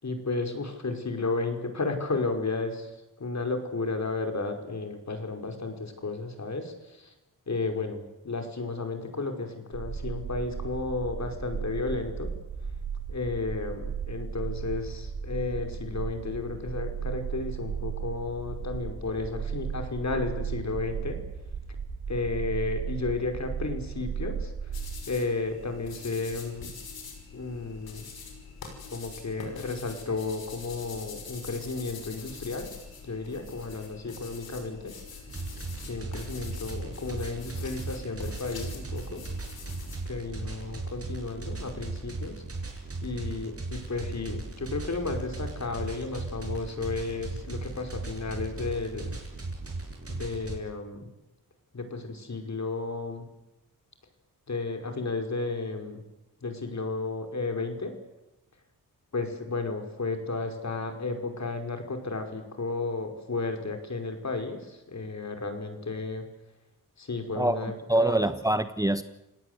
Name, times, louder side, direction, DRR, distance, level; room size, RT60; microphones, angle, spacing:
voice 1, 0.0-2.9 3.2-7.1 7.5-12.3 13.1-21.2 22.1-24.5 25.1-26.7 27.3-28.1 28.9-32.7 33.0-34.9 35.8-39.2 40.1-42.4 43.0-49.2 50.1-51.1 51.7-53.2 54.5-56.0 56.4-57.9 59.1-66.2 67.0-67.7 68.0-68.3, left 3 dB, 50° left, 5.3 m, -33 dB
sound 1, 9.7-25.0, right 7 dB, 65° right, 5.4 m, -35 dB
sound 2, 24.7-40.0, left 5 dB, 90° left, 6.0 m, -44 dB
sound 3, 35.3-50.6, right 3 dB, 40° right, 7.0 m, -37 dB
voice 2, 67.4-69.0, right 1 dB, 10° right, 1.2 m, -25 dB
29.5 x 18.0 x 8.2 m
cardioid pair, 70°, 36 cm